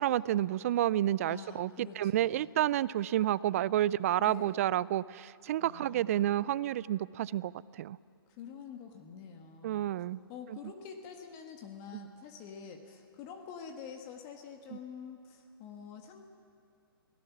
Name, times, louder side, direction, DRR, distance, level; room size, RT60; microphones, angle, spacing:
voice 1, 0.0-8.0 9.6-10.2, right 13 dB, 35° right, 21 dB, 0.4 m, -30 dB
voice 2, 1.3-2.5 4.2-4.6 5.6-6.5 8.3-9.9 10.3-16.3, left 6 dB, 30° left, 4 dB, 1.6 m, -47 dB
27.0 x 17.0 x 6.1 m, 2.4 s
figure-of-eight pair, 135°, 13 cm